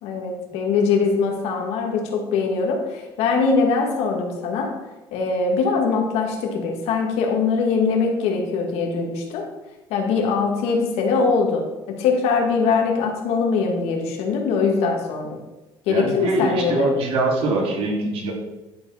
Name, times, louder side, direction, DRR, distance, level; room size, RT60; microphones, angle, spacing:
voice 1, 0.0-4.7 5.1-9.5 9.9-15.4 15.9-16.9, left 4 dB, 75° left, 2 dB, 2.1 m, -22 dB
voice 2, 15.9-18.3, right 2 dB, 65° right, -1 dB, 3.0 m, -23 dB
11.0 x 5.1 x 5.8 m, 1.1 s
cardioid pair, 125°, 10 cm